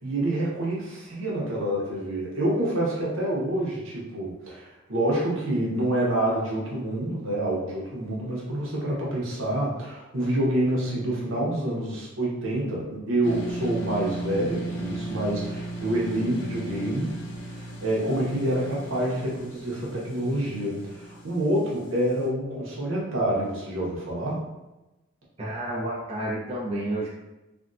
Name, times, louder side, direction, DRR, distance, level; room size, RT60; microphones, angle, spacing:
voice 1, 0.0-17.1 17.5-24.4, right 1 dB, 80° right, -5 dB, 0.9 m, -27 dB
sound 1, 13.2-22.3, right 2 dB, 60° left, 0.6 m, -36 dB
voice 2, 25.4-27.1, right 1 dB, 30° right, -7 dB, 0.7 m, -30 dB
3.5 x 2.2 x 2.5 m, 1.0 s
head